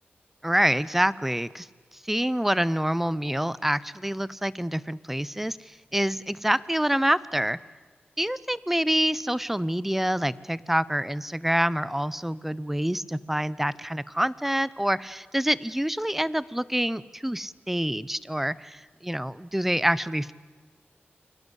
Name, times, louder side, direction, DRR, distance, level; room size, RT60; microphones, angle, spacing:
voice 1, 0.4-1.7 2.0-7.6 8.2-20.3, equal, 5° right, 19 dB, 0.8 m, -26 dB
29.0 x 23.5 x 8.2 m, 1.5 s
wide cardioid pair, 90°, 4 cm